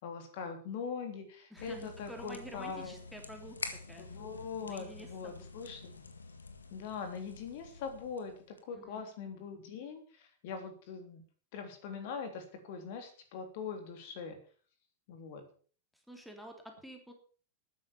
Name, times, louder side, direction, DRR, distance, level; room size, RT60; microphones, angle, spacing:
voice 1, 0.0-3.0 4.0-5.9 6.7-8.3 8.7-11.2 11.5-14.4 15.1-15.4, left 5 dB, 50° left, 6 dB, 3.3 m, -42 dB
voice 2, 1.5-3.6 3.9-4.1 4.7-5.4 8.7-9.1 16.1-17.1, equal, ahead, 4 dB, 3.3 m, -49 dB
sound 1, 1.6-8.6, left 4 dB, 75° left, 1.8 m, -48 dB
13.0 x 9.8 x 7.0 m, 0.42 s
figure-of-eight pair, 90°, 0 cm